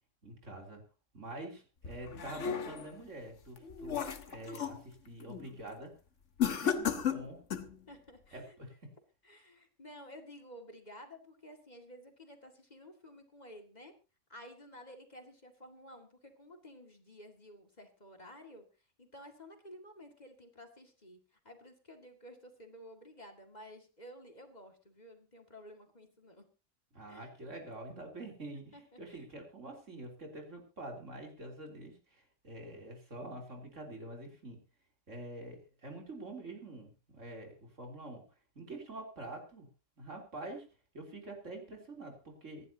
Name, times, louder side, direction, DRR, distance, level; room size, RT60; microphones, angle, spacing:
voice 1, 0.2-0.8 1.1-5.9 6.5-7.4 8.3-8.8 26.9-34.6 35.1-38.3 38.6-39.7 40.0-40.7 40.9-42.7, right 2 dB, 70° right, 2 dB, 3.7 m, -46 dB
sound 1, 1.8-3.0 3.5-4.8 5.2-5.5 6.4-7.8, left 8 dB, 65° left, 1.6 m, -34 dB
voice 2, 7.9-8.6 9.2-13.9 14.3-18.7 19.0-21.2 21.4-26.4 27.1-27.3 28.7-29.2, equal, 35° left, 4 dB, 2.3 m, -53 dB
25.0 x 11.0 x 2.8 m, 0.32 s
omnidirectional pair, 1.3 m